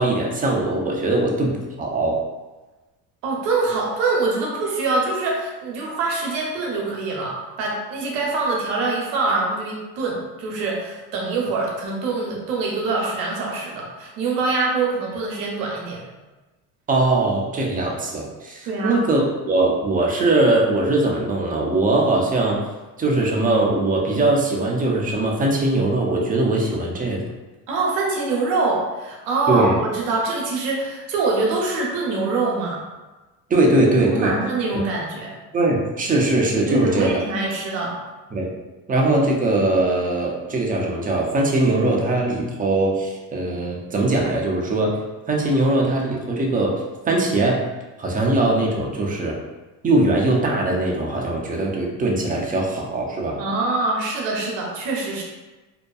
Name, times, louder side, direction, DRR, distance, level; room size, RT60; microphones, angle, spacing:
voice 1, 0.0-2.2 16.9-22.6 23.0-27.2 29.5-29.8 33.5-34.3 35.5-37.2 38.3-38.5 38.9-45.0 45.3-46.8 47.0-47.6 48.0-49.4 49.8-53.4, right 2 dB, 20° right, -1 dB, 0.5 m, -21 dB
voice 2, 3.2-16.0 18.7-19.0 27.7-32.8 34.0-35.4 36.7-38.0 53.4-55.2, right 3 dB, 80° right, -2 dB, 0.8 m, -24 dB
2.7 x 2.2 x 2.3 m, 1.2 s
hypercardioid pair, 80°, 48 cm